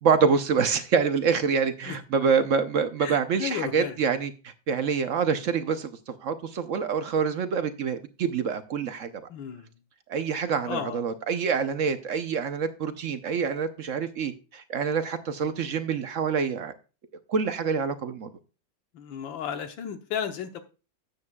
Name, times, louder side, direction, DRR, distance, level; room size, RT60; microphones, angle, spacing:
voice 1, 0.0-9.1 10.1-16.7 17.3-18.3, right 6 dB, 60° right, 0.8 m, -26 dB
voice 2, 3.0-3.9 9.3-9.7 10.6-11.0 18.9-20.6, left 8 dB, 85° left, 1.7 m, -33 dB
13.0 x 8.7 x 2.3 m
omnidirectional pair, 2.0 m